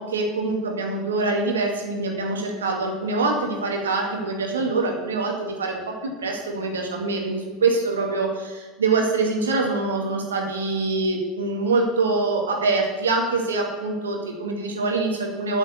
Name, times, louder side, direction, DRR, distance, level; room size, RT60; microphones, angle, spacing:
voice 1, 0.0-15.6, right 3 dB, 80° right, 1 dB, 2.1 m, -24 dB
8.3 x 7.3 x 8.3 m, 1.3 s
figure-of-eight pair, 75°, 0 cm